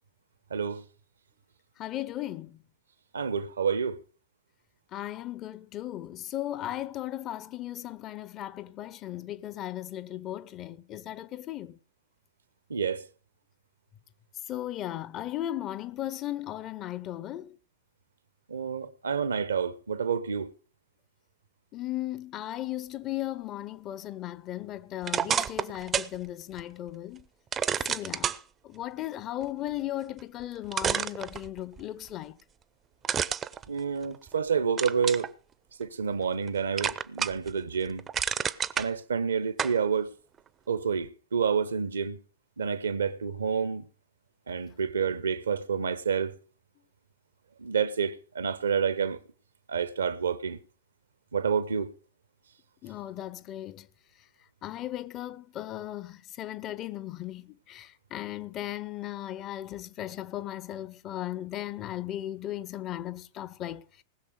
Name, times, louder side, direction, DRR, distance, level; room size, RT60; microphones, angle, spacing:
voice 1, 0.5-0.8 3.1-4.0 12.7-13.0 18.5-20.5 33.7-35.3 35.8-38.1 38.8-40.1 40.7-42.2 42.6-43.8 44.5-46.3 47.6-49.2 49.7-50.6 51.3-51.9, right 6 dB, 70° right, 1.0 m, -29 dB
voice 2, 1.8-2.6 4.9-11.8 14.5-17.6 21.7-27.3 27.8-28.4 28.6-32.4 52.8-53.9 54.6-64.0, left 13 dB, 35° left, 0.8 m, -36 dB
sound 1, 25.0-26.2 26.6-26.7 27.5-28.4 30.2-30.3 30.7-31.8 33.0-34.3 34.8-35.3 35.8-36.5 36.8-37.5 37.9-38.9 39.6-39.8, right 8 dB, 25° right, 0.6 m, -29 dB
19.5 x 6.8 x 5.2 m
figure-of-eight pair, 90°, 0 cm